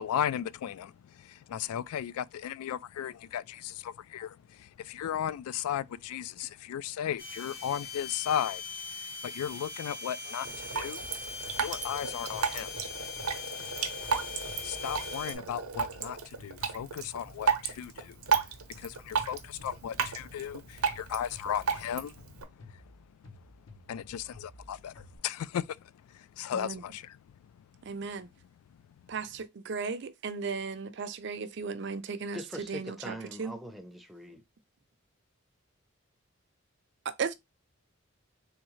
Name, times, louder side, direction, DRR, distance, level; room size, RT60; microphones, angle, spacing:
voice 1, 0.0-8.6 8.9-11.0 11.5-12.7 14.6-22.9 23.9-27.2 27.6-27.7, left 9 dB, 90° left, 0.3 m, -36 dB
sound 1, 7.2-15.4, left 5 dB, 45° left, 0.9 m, -41 dB
Drip, 10.4-22.4, right 6 dB, 85° right, 0.7 m, -34 dB
sound 2, 11.5-17.5 18.3-25.2, left 1 dB, 70° left, 1.0 m, -53 dB
voice 2, 26.5-26.8 27.9-28.3 29.1-32.4 32.7-33.5 37.1-37.3, right 5 dB, 50° right, 0.4 m, -36 dB
voice 3, 32.3-34.4, equal, ahead, 0.5 m, -42 dB
3.6 x 3.0 x 3.1 m
head